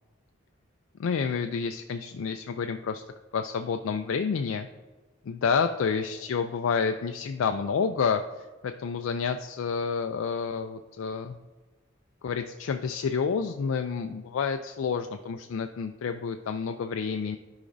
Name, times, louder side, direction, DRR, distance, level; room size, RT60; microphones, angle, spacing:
voice 1, 1.0-3.0 3.3-4.7 5.3-11.4 12.2-17.4, left 6 dB, 70° left, 6 dB, 0.3 m, -29 dB
11.5 x 4.9 x 2.6 m, 1.3 s
head